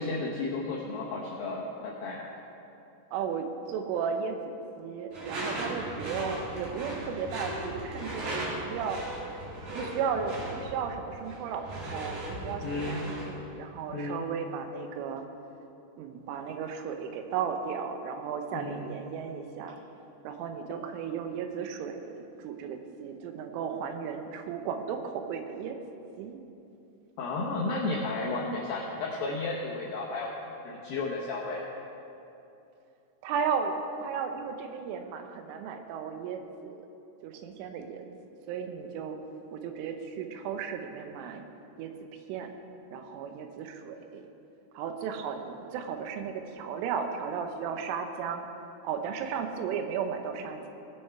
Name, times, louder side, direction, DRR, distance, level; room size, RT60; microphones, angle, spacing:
voice 1, 0.0-2.3 12.6-13.0 13.9-14.2 18.5-18.8 27.2-30.3 30.6-31.6, left 3 dB, 80° left, -4 dB, 2.1 m, -33 dB
voice 2, 3.1-9.0 9.7-15.2 16.0-19.8 20.2-25.8 26.2-26.4 33.2-33.7 34.0-36.8 37.2-38.1 38.5-39.2 39.5-41.4 41.8-41.9 42.3-42.5 42.9-44.3 44.7-48.5 48.8-50.7, right 6 dB, 90° right, 6 dB, 3.3 m, -35 dB
Door / Screech, 5.1-13.3, right 1 dB, 50° right, 2.7 m, -37 dB
18.0 x 6.4 x 4.6 m, 2.8 s
omnidirectional pair, 5.5 m